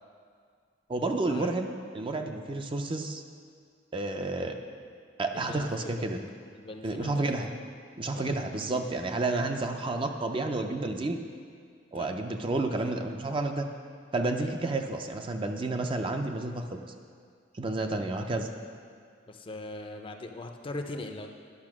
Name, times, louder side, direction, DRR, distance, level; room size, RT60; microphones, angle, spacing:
voice 1, 0.9-1.7 1.9-3.2 3.9-4.6 5.2-6.3 6.8-7.5 8.0-11.2 11.9-13.7 14.1-16.8 17.6-18.5, right 2 dB, 30° right, 5 dB, 0.5 m, -30 dB
voice 2, 5.3-6.1 6.5-7.2 8.1-8.3 11.9-12.1 14.4-14.5 19.3-21.3, left 2 dB, 30° left, 5 dB, 0.5 m, -40 dB
10.5 x 5.6 x 6.1 m, 2.1 s
head